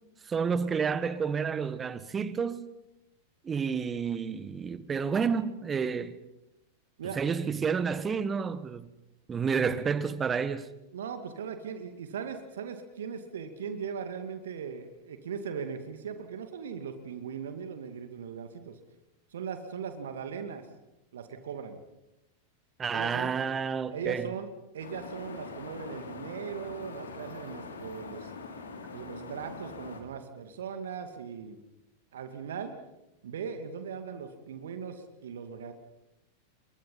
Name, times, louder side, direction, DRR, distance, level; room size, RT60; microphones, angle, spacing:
voice 1, 0.2-2.7 3.4-6.2 7.1-8.9 9.3-10.7 22.8-24.3, right 6 dB, 20° right, 1.5 m, -30 dB
voice 2, 10.9-18.8 19.3-20.7 21.1-21.8 22.9-23.3 23.9-24.5 24.7-28.3 28.9-31.6 32.1-32.7 33.2-35.7, right 6 dB, 60° right, 2.4 m, -39 dB
sound 1, 24.8-30.0, left 4 dB, 70° left, 3.8 m, -43 dB
30.0 x 23.5 x 5.7 m
figure-of-eight pair, 90°, 0 cm